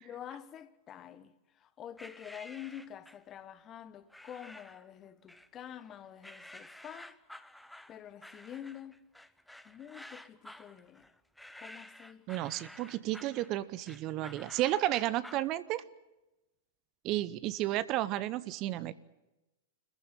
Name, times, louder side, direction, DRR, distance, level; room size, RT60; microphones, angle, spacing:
voice 1, 0.0-7.2 7.9-9.0 9.6-11.1 11.6-12.3, left 10 dB, 30° left, 1.2 m, -47 dB
sound 1, 2.0-3.3 4.1-4.9 5.3-5.9 6.2-15.5, left 1 dB, ahead, 0.9 m, -51 dB
voice 2, 12.3-15.8 17.0-18.9, right 15 dB, 40° right, 0.8 m, -32 dB
26.0 x 14.5 x 9.9 m
figure-of-eight pair, 100°, 0 cm